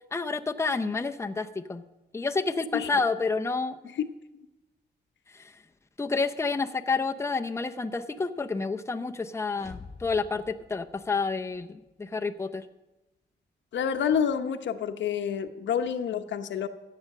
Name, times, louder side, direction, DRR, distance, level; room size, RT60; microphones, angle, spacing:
voice 1, 0.1-1.8 2.1-3.8 5.3-5.5 6.0-12.6, left 4 dB, 15° left, 7 dB, 0.6 m, -29 dB
sound 1, 9.5-11.6, left 4 dB, 40° left, 1.0 m, -48 dB
voice 2, 13.7-16.7, left 7 dB, 85° left, 8 dB, 0.9 m, -28 dB
14.0 x 8.6 x 6.5 m, 1.0 s
cardioid pair, 110°, 19 cm